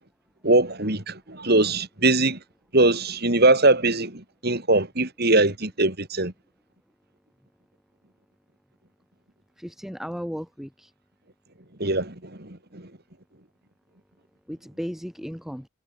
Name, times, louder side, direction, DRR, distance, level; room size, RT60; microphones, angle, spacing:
voice 1, 0.4-2.4 2.7-6.3 11.8-12.9, right 2 dB, 50° right, 3.9 m, -21 dB
voice 2, 9.6-10.9 14.5-15.7, equal, ahead, 7.1 m, -35 dB
head